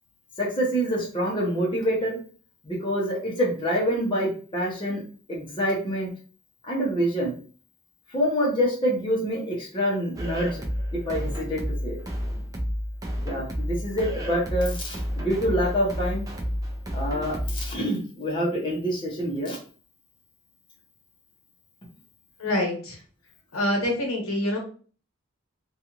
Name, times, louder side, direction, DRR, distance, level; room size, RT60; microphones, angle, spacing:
voice 1, 0.4-2.2 2.6-5.0 5.3-6.1 6.7-7.3 8.1-10.6 11.1-12.0 13.2-16.2 16.9-19.6, equal, 20° left, -4 dB, 0.7 m, -26 dB
sound 1, 10.2-17.8, equal, 15° right, 0.4 m, -31 dB
voice 2, 22.4-23.0 23.5-24.6, left 1 dB, 85° left, 1 dB, 1.0 m, -26 dB
2.5 x 2.4 x 2.9 m, 0.40 s
head